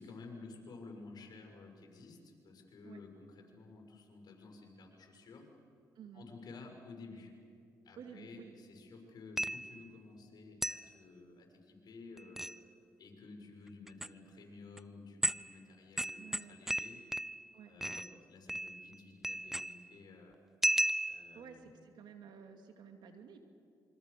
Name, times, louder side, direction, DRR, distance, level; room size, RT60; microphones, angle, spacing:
voice 1, 0.0-5.5 6.1-7.4 7.8-12.6 13.0-17.0 17.7-20.4 21.1-21.7, left 3 dB, 60° left, 2 dB, 6.5 m, -53 dB
voice 2, 6.0-6.3 8.0-8.5 16.2-16.6 17.5-17.7 21.3-23.4, right 7 dB, 75° right, 6 dB, 2.6 m, -52 dB
sound 1, 9.4-9.8 10.6-10.9 12.2-12.6 13.9-14.1 14.8-14.9 15.2-15.5 16.0-17.5 17.8-18.1 18.5-19.0 19.2-19.9 20.6-21.4, right 1 dB, 5° right, 0.6 m, -35 dB
27.5 x 24.5 x 6.9 m, 2.4 s
cardioid pair, 75°, 8 cm